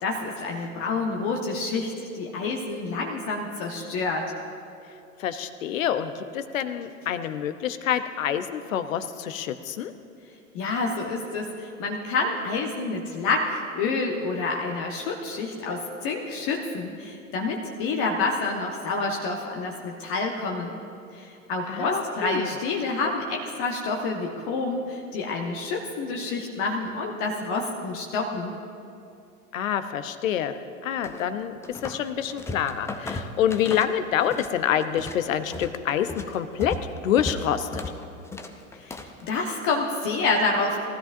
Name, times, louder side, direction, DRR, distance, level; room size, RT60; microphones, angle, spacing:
voice 1, 0.0-4.3 10.5-20.8 21.1-28.6 38.7-40.8, left 3 dB, 45° left, 0 dB, 1.3 m, -28 dB
voice 2, 5.2-9.9 21.7-22.5 29.5-30.6 30.8-36.7 37.0-37.8, left 9 dB, 65° left, 11 dB, 0.8 m, -27 dB
sound 1, 31.0-32.0 32.3-34.5 34.8-39.2, left 2 dB, 5° left, 0.5 m, -36 dB
19.0 x 13.0 x 2.6 m, 2.5 s
figure-of-eight pair, 90°, 42 cm